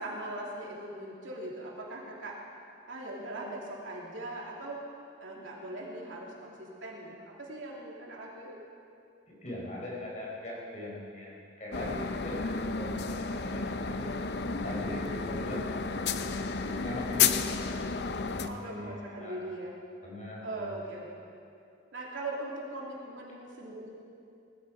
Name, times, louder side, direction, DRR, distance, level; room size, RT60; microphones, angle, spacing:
voice 1, 0.0-2.4 2.9-4.8 5.2-8.6 18.4-19.7 20.4-21.1 21.9-23.9, right 1 dB, 85° right, -3 dB, 3.1 m, -40 dB
voice 2, 9.3-14.1 14.6-17.7 18.3-19.5 20.0-20.7, left 1 dB, 40° left, -4 dB, 4.6 m, -41 dB
sound 1, 11.7-18.5, left 5 dB, 60° left, 0.6 m, -31 dB
19.5 x 14.5 x 5.0 m, 2.5 s
head